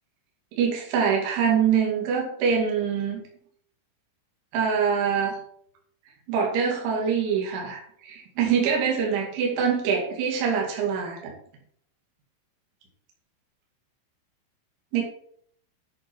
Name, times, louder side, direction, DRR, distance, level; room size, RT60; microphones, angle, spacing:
voice 1, 0.6-3.2 4.5-5.4 6.3-11.3 14.9-15.0, right 6 dB, 75° right, -2 dB, 4.7 m, -24 dB
10.5 x 6.4 x 4.6 m, 0.65 s
omnidirectional pair, 5.6 m